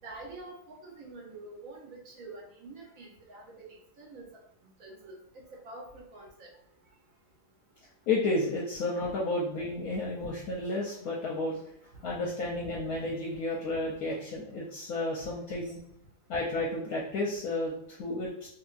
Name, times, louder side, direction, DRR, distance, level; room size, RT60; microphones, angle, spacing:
voice 1, 0.0-4.2 4.8-6.5 12.1-12.2, right 2 dB, 60° right, -2 dB, 1.2 m, -47 dB
voice 2, 8.1-11.6 12.0-15.8 16.3-18.5, left 2 dB, 70° left, -3 dB, 1.0 m, -32 dB
3.2 x 2.6 x 2.4 m, 0.69 s
omnidirectional pair, 1.8 m